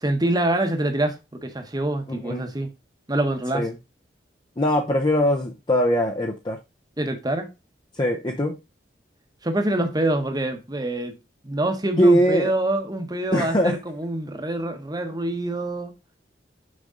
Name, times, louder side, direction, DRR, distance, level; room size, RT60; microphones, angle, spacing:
voice 1, 0.0-2.7 3.1-3.7 7.0-7.5 9.4-11.1 11.4-15.9, right 1 dB, 25° right, 1.1 m, -25 dB
voice 2, 2.1-2.5 3.5-3.7 4.6-6.6 7.9-8.6 12.0-12.5 13.3-13.8, equal, 25° left, 0.7 m, -21 dB
6.4 x 5.2 x 3.8 m
head